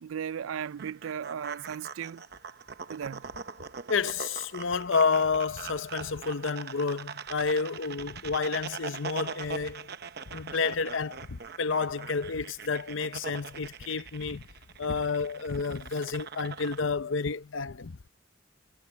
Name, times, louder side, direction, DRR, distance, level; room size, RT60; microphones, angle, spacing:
voice 1, 0.0-2.2 2.9-3.3, right 8 dB, 90° right, 0.4 m, -36 dB
sound 1, 0.6-16.8, right 5 dB, 50° right, 0.9 m, -42 dB
voice 2, 3.9-9.9 10.3-14.4 14.8-18.0, left 5 dB, 70° left, 0.7 m, -30 dB
head